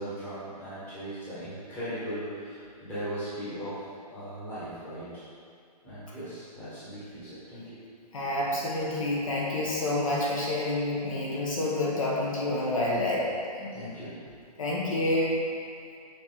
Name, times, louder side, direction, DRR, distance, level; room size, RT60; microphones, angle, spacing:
voice 1, 0.0-3.8 4.1-5.1 5.8-7.8 13.7-14.1, equal, 10° left, -12 dB, 1.4 m, -38 dB
voice 2, 8.1-13.3 13.6-13.7 14.6-15.3, left 1 dB, 55° left, -4 dB, 1.6 m, -28 dB
7.6 x 4.5 x 3.7 m, 2.4 s
hypercardioid pair, 170°, 20 cm